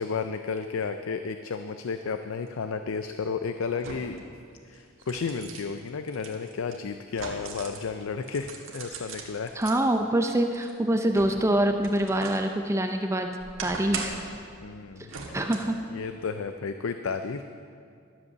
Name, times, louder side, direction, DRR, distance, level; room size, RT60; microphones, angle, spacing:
voice 1, 0.0-4.2 4.6-9.6 14.6-15.1 15.9-17.4, left 5 dB, 80° left, 8 dB, 0.5 m, -32 dB
sound 1, 2.5-2.6 3.8-4.3 4.7-7.9 8.2-9.8 10.3-12.5 12.9-14.4 15.1-15.8 16.2-16.3, right 4 dB, 75° right, 1.6 m, -40 dB
voice 2, 9.6-13.3 13.6-14.2 15.3-15.8, right 1 dB, 15° right, 5 dB, 0.5 m, -25 dB
12.0 x 8.1 x 6.8 m, 2.3 s
head